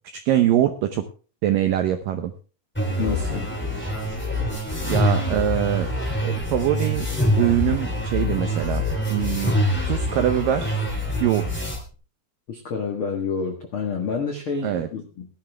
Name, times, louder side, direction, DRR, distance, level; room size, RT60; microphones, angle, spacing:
voice 1, 0.3-1.0 1.4-2.3 4.8-5.9 6.2-7.1 7.4-8.8 9.1-9.5 9.8-10.8 11.2-11.5 14.6-14.9, right 11 dB, 80° right, 7 dB, 1.9 m, -23 dB
sound 1, 2.7-11.8, equal, 5° left, 1.6 m, -25 dB
voice 2, 3.0-3.5 12.5-15.3, left 5 dB, 80° left, 2 dB, 1.1 m, -28 dB
17.0 x 11.5 x 3.4 m, 0.36 s
omnidirectional pair, 5.0 m